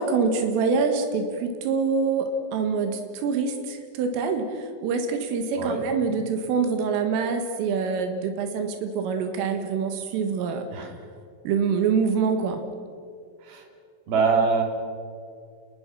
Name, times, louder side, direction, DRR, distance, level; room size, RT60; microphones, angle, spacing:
voice 1, 0.0-10.7 11.5-12.6, right 5 dB, 90° right, 5 dB, 4.2 m, -25 dB
voice 2, 14.1-14.6, right 5 dB, 55° right, 2 dB, 4.7 m, -23 dB
28.5 x 21.5 x 6.2 m, 2.3 s
omnidirectional pair, 5.6 m